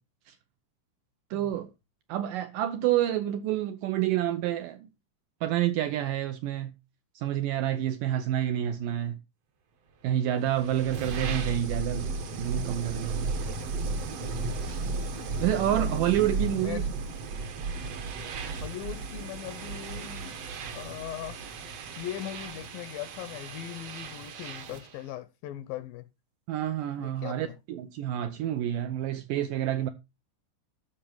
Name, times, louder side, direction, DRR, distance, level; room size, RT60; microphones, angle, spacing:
voice 1, 1.3-1.7 2.1-4.9 5.4-6.7 7.2-9.2 10.0-12.1 12.4-13.3 14.6-14.8 15.4-16.8 26.5-29.9, right 12 dB, 80° right, 2.0 m, -28 dB
sound 1, 10.3-24.9, right 3 dB, 60° right, 1.8 m, -35 dB
voice 2, 15.5-17.0 18.6-20.4 20.7-21.4 22.0-26.1 27.0-27.6, left 12 dB, 80° left, 2.2 m, -40 dB
12.5 x 6.1 x 4.6 m
omnidirectional pair, 4.5 m